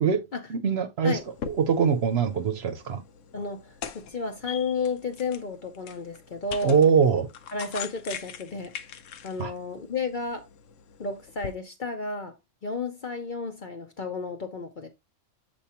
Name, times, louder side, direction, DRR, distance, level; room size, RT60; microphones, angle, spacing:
voice 1, 0.5-1.2 1.4-3.0 6.6-7.3 9.4-9.5, right 6 dB, 55° right, 0.9 m, -22 dB
sound 1, 1.2-11.5, left 8 dB, 75° left, 1.0 m, -42 dB
voice 2, 3.3-6.8 7.5-8.7 9.2-10.5 11.0-12.3 12.6-14.9, left 4 dB, 45° left, 0.7 m, -32 dB
7.1 x 4.5 x 2.9 m
omnidirectional pair, 1.3 m